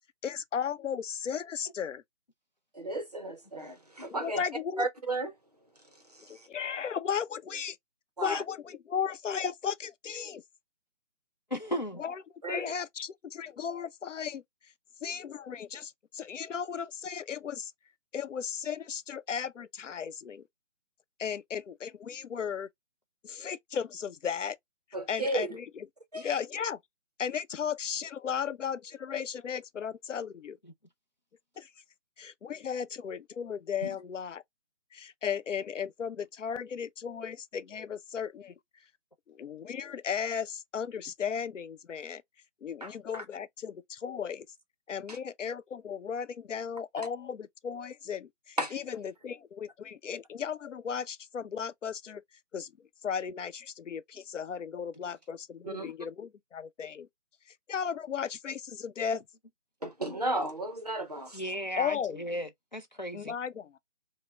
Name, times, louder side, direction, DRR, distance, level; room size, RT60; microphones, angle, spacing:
voice 1, 0.2-2.0 4.1-4.9 6.3-7.8 8.2-10.4 12.0-12.2 12.5-14.4 15.0-17.7 18.1-20.4 21.2-22.7 23.2-24.6 25.1-25.9 26.1-26.8 27.2-30.6 31.6-31.7 32.2-34.4 34.9-38.5 39.3-42.2 42.6-44.5 44.9-52.2 52.5-52.7 53.0-57.1 57.7-59.2 61.8-62.2 63.1-63.8, left 7 dB, 80° left, 0.7 m, -35 dB
voice 2, 2.7-4.4 4.8-5.3 6.1-6.5 8.2-8.4 12.4-12.7 24.9-25.5 26.1-26.3 33.8-33.9 42.8-43.2 45.1-45.2 48.6-48.8 55.6-55.9 59.8-61.4, right 2 dB, 35° right, 0.6 m, -34 dB
voice 3, 11.5-12.0 61.3-63.3, equal, 40° left, 0.5 m, -35 dB
5.1 x 2.1 x 2.2 m
hypercardioid pair, 175°, 37 cm